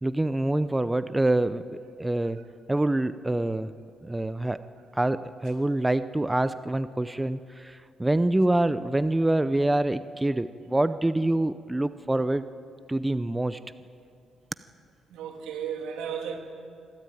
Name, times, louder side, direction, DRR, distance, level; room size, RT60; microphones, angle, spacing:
voice 1, 0.0-2.4 2.7-3.7 4.0-4.6 4.9-12.5 12.9-13.6, right 1 dB, 10° right, 13 dB, 0.6 m, -26 dB
voice 2, 15.1-16.4, right 7 dB, 85° right, 3 dB, 2.8 m, -34 dB
25.5 x 12.5 x 9.1 m, 2.4 s
cardioid pair, 90°, 0 cm